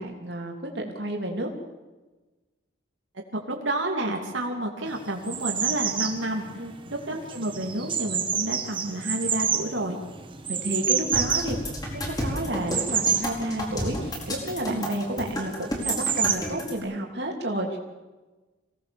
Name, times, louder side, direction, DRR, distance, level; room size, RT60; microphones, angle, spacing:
voice 1, 0.0-1.5 6.6-6.7 10.5-17.8, right 1 dB, 55° right, 1 dB, 3.4 m, -31 dB
voice 2, 3.3-6.5 6.9-10.0 14.7-14.8, right 1 dB, 75° right, 0 dB, 2.9 m, -30 dB
sound 1, 4.9-16.4, right 7 dB, 25° right, 1.5 m, -29 dB
sound 2, 11.1-16.7, equal, 20° left, 4.5 m, -31 dB
27.0 x 18.0 x 7.2 m, 1.2 s
head